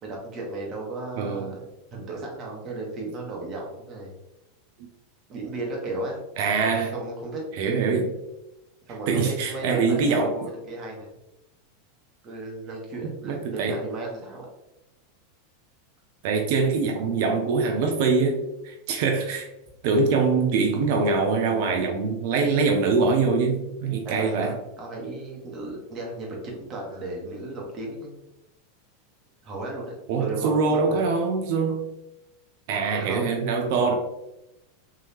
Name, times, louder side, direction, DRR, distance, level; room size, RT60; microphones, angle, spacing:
voice 1, 0.0-1.6 1.9-4.1 5.3-6.2 6.6-7.4 8.9-11.2 12.2-14.5 24.0-28.1 29.4-31.0 32.9-33.4 33.8-34.0, right 2 dB, 35° right, -2 dB, 1.3 m, -35 dB
voice 2, 1.2-1.5 6.4-6.9 7.5-8.1 9.1-10.3 13.3-13.8 16.2-19.5 19.8-24.6 30.1-31.9 32.7-34.0, right 4 dB, 60° right, 3 dB, 0.5 m, -23 dB
3.6 x 3.0 x 2.8 m, 0.90 s
hypercardioid pair, 95°, 0 cm